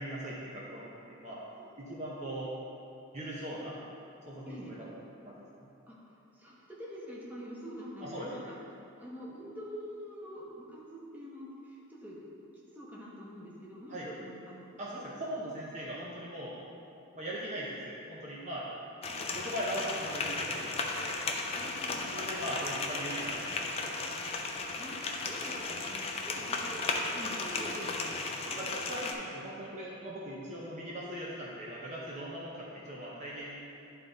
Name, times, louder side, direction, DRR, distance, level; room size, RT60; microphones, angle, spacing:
voice 1, 0.0-1.4 1.8-2.5 3.1-3.8 4.3-4.9 5.2-5.4 8.0-8.3 13.9-14.1 14.8-16.6 17.1-18.7 19.2-21.2 22.1-23.9 28.0-28.1 28.5-33.6, right 1 dB, 30° right, -6 dB, 0.8 m, -40 dB
voice 2, 1.5-1.9 4.5-4.8 5.9-8.5 8.9-12.2 12.7-15.0 19.1-19.4 21.5-22.3 24.7-28.6, equal, 10° right, -6 dB, 1.0 m, -46 dB
sound 1, 19.0-29.1, left 3 dB, 25° left, 0.4 m, -35 dB
10.5 x 3.8 x 4.0 m, 2.8 s
head